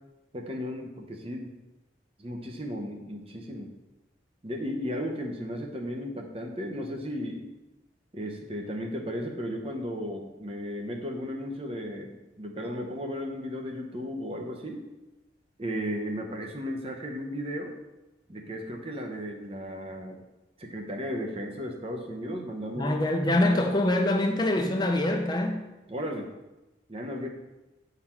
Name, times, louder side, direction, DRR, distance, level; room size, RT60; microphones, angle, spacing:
voice 1, 0.3-1.5 2.2-3.7 4.4-7.5 8.1-14.8 15.6-17.8 18.3-20.2 20.6-22.9 25.9-26.3 26.9-27.3, equal, 30° right, 3 dB, 0.8 m, -35 dB
voice 2, 22.8-25.6, left 1 dB, 25° left, 3 dB, 0.7 m, -24 dB
8.3 x 4.0 x 4.4 m, 1.0 s
head